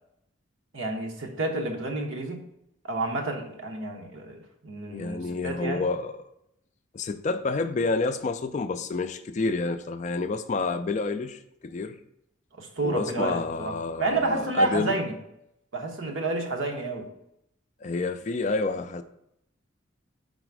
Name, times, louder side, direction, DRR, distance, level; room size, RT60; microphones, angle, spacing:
voice 1, 0.7-2.5 2.8-5.8 12.6-13.7 14.0-15.1 15.7-17.1, right 2 dB, 75° right, 1.0 m, -29 dB
voice 2, 4.9-6.1 6.9-12.0 12.8-14.9 17.8-19.0, left 3 dB, 35° left, 0.3 m, -29 dB
5.0 x 4.0 x 4.7 m
head